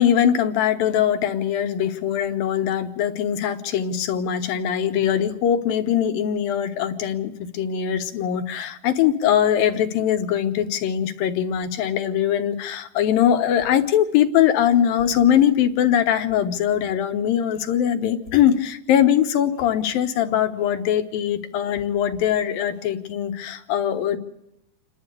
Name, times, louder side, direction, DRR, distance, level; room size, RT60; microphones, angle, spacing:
voice 1, 0.0-24.2, left 9 dB, 70° left, 8 dB, 2.8 m, -21 dB
28.0 x 12.0 x 8.3 m, 0.83 s
omnidirectional pair, 4.6 m